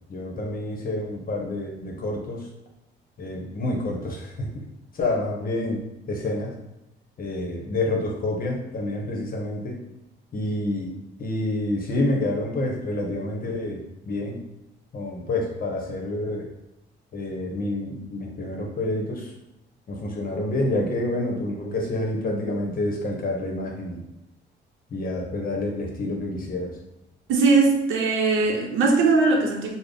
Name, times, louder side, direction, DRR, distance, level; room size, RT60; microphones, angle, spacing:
voice 1, 0.1-2.5 3.2-4.6 4.9-5.8 6.1-6.5 7.2-9.8 10.3-14.4 14.9-16.5 17.1-19.3 19.9-24.0 24.9-26.8, left 1 dB, 45° left, 1 dB, 0.9 m, -28 dB
voice 2, 27.3-29.8, right 3 dB, 85° right, 1 dB, 0.7 m, -20 dB
3.4 x 2.0 x 3.8 m, 0.91 s
cardioid pair, 90°, 20 cm